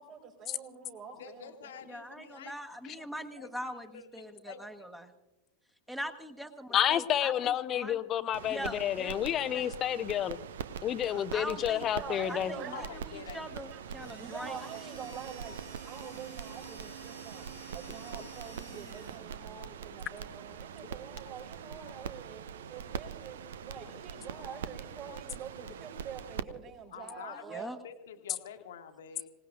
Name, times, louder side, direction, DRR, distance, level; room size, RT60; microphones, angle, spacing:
voice 1, 0.0-1.7 12.0-12.9 13.7-13.8 14.1-15.5 15.8-17.4 17.7-22.4 22.7-23.4 23.6-27.7, right 6 dB, 40° right, -6 dB, 4.8 m, -45 dB
voice 2, 1.2-2.6 3.0-3.1 3.4-4.7 12.6-13.6 14.0-14.2 17.9-18.0 26.9-29.3, left 7 dB, 60° left, 7 dB, 1.3 m, -48 dB
voice 3, 1.9-5.1 5.9-8.0 8.5-9.7 10.9-11.9 12.3-14.6 27.5-27.8, equal, 5° right, 7 dB, 1.3 m, -42 dB
voice 4, 6.7-10.4 10.8-12.5, left 10 dB, 30° left, 14 dB, 0.7 m, -30 dB
sound 1, 8.3-26.4, right 8 dB, 60° right, 0.6 m, -43 dB
sound 2, 13.7-19.6, right 4 dB, 80° right, 4.2 m, -50 dB
26.0 x 18.5 x 2.5 m, 1.0 s
figure-of-eight pair, 90°, 0 cm